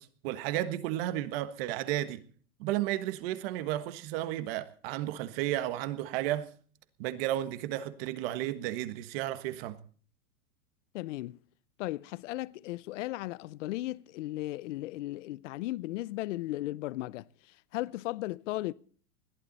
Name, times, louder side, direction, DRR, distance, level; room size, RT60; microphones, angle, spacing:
voice 1, 0.0-2.2 2.6-6.5 7.0-9.8, right 14 dB, 40° right, 1.5 m, -33 dB
voice 2, 10.9-11.4 11.8-18.7, left 17 dB, 55° left, 0.6 m, -36 dB
21.0 x 14.5 x 4.1 m
supercardioid pair, 155°, 43 cm